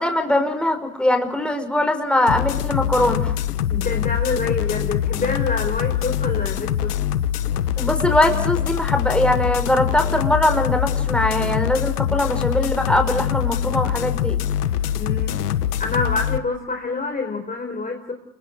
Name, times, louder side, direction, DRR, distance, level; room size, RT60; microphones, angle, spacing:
voice 1, 0.0-3.3 7.8-14.4, left 1 dB, ahead, 5 dB, 5.4 m, -21 dB
sound 1, 2.3-16.4, left 10 dB, 90° left, 1.4 m, -23 dB
voice 2, 3.7-6.9 15.0-15.3 15.8-18.1, left 3 dB, 20° left, 4 dB, 4.1 m, -26 dB
28.5 x 23.5 x 6.5 m, 0.89 s
hypercardioid pair, 90°, 45 cm